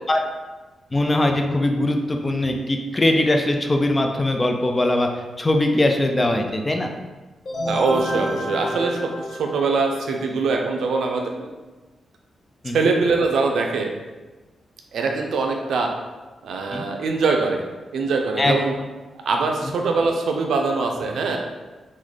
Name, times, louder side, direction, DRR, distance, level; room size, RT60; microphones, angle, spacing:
voice 1, 0.9-5.1 5.4-6.9 12.6-12.9 16.7-16.9 18.4-18.5 19.6-19.7, left 1 dB, 20° left, 3 dB, 0.3 m, -21 dB
sound 1, 7.4-10.1, equal, 50° left, 1.2 m, -29 dB
voice 2, 7.7-11.5 12.7-13.9 14.9-15.9 16.4-17.6 17.9-18.8 19.3-21.4, right 4 dB, 85° right, 2 dB, 0.4 m, -22 dB
3.1 x 2.2 x 3.9 m, 1.2 s
wide cardioid pair, 135°, 0 cm